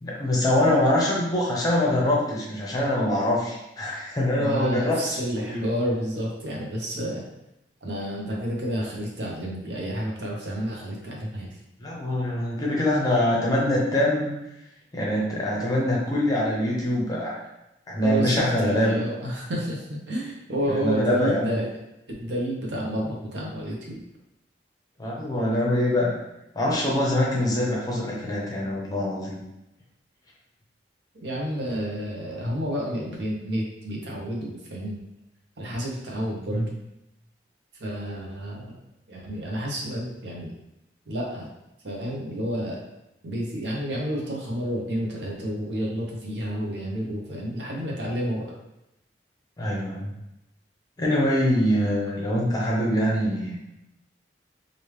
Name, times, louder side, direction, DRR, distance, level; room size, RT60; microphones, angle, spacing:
voice 1, 0.0-5.6 11.8-14.3 14.9-17.4 17.9-19.0 20.8-21.6 25.0-26.2 26.6-29.4 36.5-36.7 49.6-50.1 51.0-53.6, left 1 dB, 20° left, -3 dB, 0.7 m, -24 dB
voice 2, 4.4-7.2 7.8-11.5 18.0-21.7 22.2-24.0 31.2-35.0 35.6-36.7 37.8-38.8 39.1-40.5 41.1-41.5 41.8-42.8 43.2-48.5, equal, 80° right, -3 dB, 0.8 m, -30 dB
3.1 x 2.5 x 3.2 m, 0.89 s
head